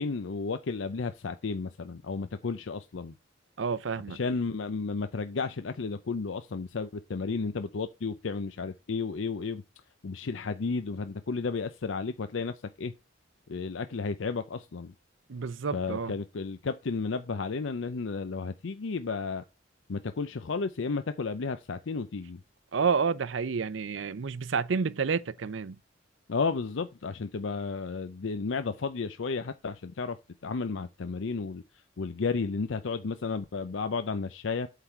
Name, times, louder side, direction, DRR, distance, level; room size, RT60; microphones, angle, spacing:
voice 1, 0.0-3.1 4.1-9.6 10.0-12.9 13.5-14.9 15.7-19.4 19.9-22.4 26.3-30.2 30.4-31.6 32.0-34.7, left 4 dB, 80° left, 0.6 m, -33 dB
voice 2, 3.6-4.2 15.3-16.1 22.7-25.8, right 5 dB, 80° right, 0.6 m, -29 dB
8.2 x 3.8 x 4.4 m
head